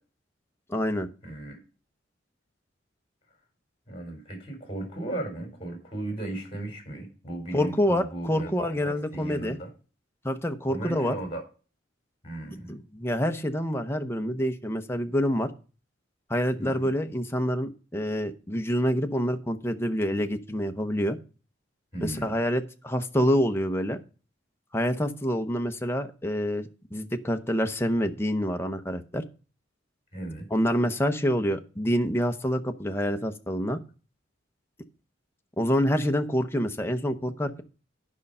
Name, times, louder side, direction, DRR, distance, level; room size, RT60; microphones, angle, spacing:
voice 1, 0.7-1.1 7.5-9.6 10.2-11.1 12.7-15.5 16.3-21.2 22.0-24.0 24.7-29.2 30.5-33.8 35.6-37.6, equal, 15° left, 6 dB, 0.8 m, -27 dB
voice 2, 1.2-1.6 3.9-9.7 10.7-11.4 12.2-12.7 16.6-16.8 21.9-22.4 30.1-30.5, right 1 dB, 30° left, 3 dB, 4.1 m, -36 dB
11.0 x 5.5 x 5.4 m, 0.36 s
head